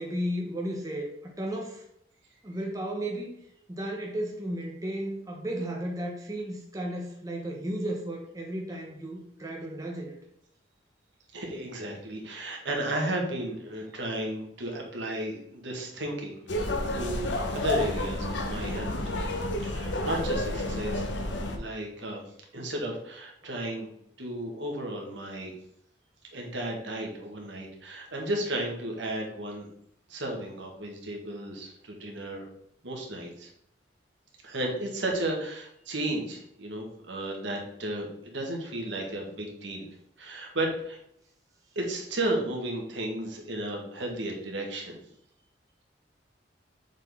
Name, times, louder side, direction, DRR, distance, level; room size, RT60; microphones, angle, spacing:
voice 1, 0.0-1.8 2.4-3.3 3.7-10.2, right 1 dB, 15° right, -1 dB, 0.8 m, -34 dB
voice 2, 11.3-16.4 16.9-19.2 19.6-21.1 21.5-22.2 22.5-23.9 24.2-25.5 26.3-29.7 30.1-32.5 32.8-33.5 34.4-39.9 40.2-41.0 41.7-45.0, right 1 dB, 70° right, 1 dB, 1.5 m, -34 dB
sound 1, 16.5-21.6, left 1 dB, 70° left, 0.9 m, -30 dB
7.2 x 4.0 x 3.5 m, 0.73 s
head